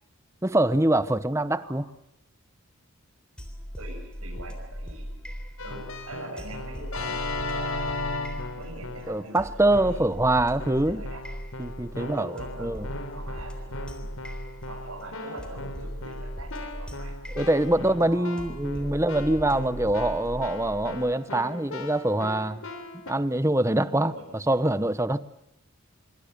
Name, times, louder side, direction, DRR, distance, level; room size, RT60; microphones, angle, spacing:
voice 1, 0.4-1.8 9.1-11.0 11.6-12.9 17.3-22.6 23.1-24.1 24.5-25.2, right 1 dB, 15° right, 0.9 m, -24 dB
sound 1, 3.4-21.1, equal, 5° left, 3.5 m, -39 dB
voice 2, 3.8-5.1 5.6-8.0 8.6-9.4 9.8-10.2 10.9-11.2 11.9-14.1 14.7-17.2 17.7-19.0 23.8-24.6, right 1 dB, 90° right, 7.6 m, -43 dB
Keyboard (musical), 5.6-9.2 9.7-10.2 10.6-23.1, left 2 dB, 70° left, 3.8 m, -37 dB
26.0 x 24.0 x 6.8 m
head